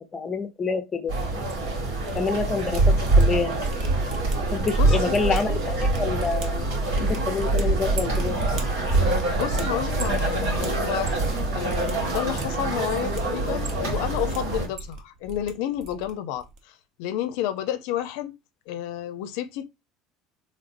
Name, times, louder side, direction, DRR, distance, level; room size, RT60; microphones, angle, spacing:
voice 1, 0.1-1.1 2.1-3.6 4.5-6.7 7.0-8.4, left 4 dB, 20° left, 0.5 m, -27 dB
sound 1, 1.1-14.7, right 2 dB, 90° right, 1.9 m, -25 dB
sound 2, 1.5-2.2 2.5-11.4 11.6-11.9 12.2-13.2 13.5-14.4 14.6-15.5 15.8-16.1 16.4-16.6, right 2 dB, 55° right, 0.9 m, -35 dB
voice 2, 4.7-5.2 9.3-11.1 11.5-18.4 18.7-19.7, left 11 dB, 75° left, 0.4 m, -31 dB
3.9 x 3.2 x 2.5 m
cardioid pair, 155°, 0 cm